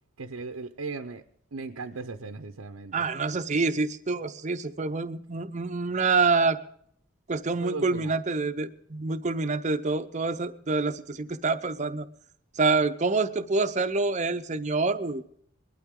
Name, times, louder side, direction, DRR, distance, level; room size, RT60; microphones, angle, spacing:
voice 1, 0.2-1.2 1.5-3.1 7.6-8.2, right 4 dB, 85° right, 6 dB, 0.8 m, -37 dB
voice 2, 2.9-6.6 7.3-12.1 12.6-15.2, right 3 dB, 30° right, 9 dB, 0.6 m, -27 dB
20.5 x 12.0 x 3.7 m, 0.66 s
head